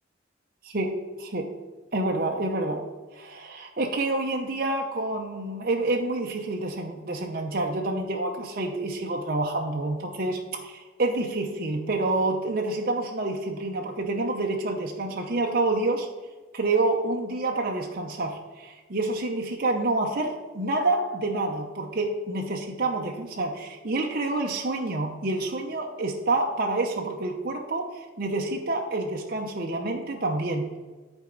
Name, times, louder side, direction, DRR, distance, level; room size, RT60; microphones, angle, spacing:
voice 1, 0.6-1.5 1.9-2.8 3.1-16.1 16.5-30.8, right 2 dB, 50° right, 1 dB, 0.8 m, -28 dB
11.5 x 4.5 x 3.9 m, 1.4 s
head